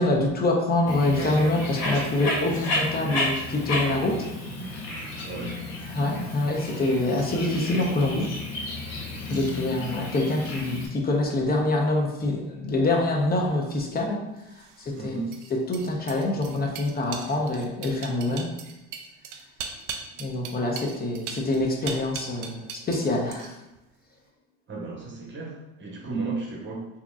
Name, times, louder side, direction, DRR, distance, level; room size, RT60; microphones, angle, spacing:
voice 1, 0.0-4.3 5.9-8.3 9.3-14.2 14.8-15.2 15.5-18.5 20.2-23.5, left 2 dB, 20° left, 1 dB, 0.8 m, -25 dB
Bird, 0.9-10.9, left 2 dB, 55° left, 1.0 m, -32 dB
voice 2, 5.2-5.5 15.0-15.3 24.7-26.9, right 4 dB, 25° right, -2 dB, 1.1 m, -34 dB
sound 1, 14.5-23.0 23.3-23.8, right 6 dB, 50° right, 0.5 m, -39 dB
3.6 x 2.9 x 2.4 m, 0.95 s
hypercardioid pair, 75°, 42 cm